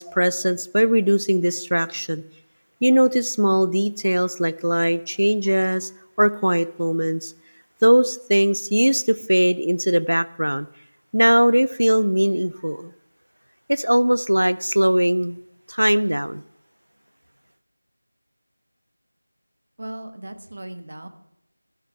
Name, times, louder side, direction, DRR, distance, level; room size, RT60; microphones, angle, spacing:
voice 1, 0.0-2.2 2.8-5.9 6.2-7.3 7.8-10.7 11.1-12.9 13.7-15.4 15.7-16.4, equal, 80° right, 0.6 m, -20 dB
voice 2, 19.8-21.1, right 1 dB, 40° right, 1.2 m, -37 dB
12.5 x 11.0 x 5.7 m
figure-of-eight pair, 170°, 0 cm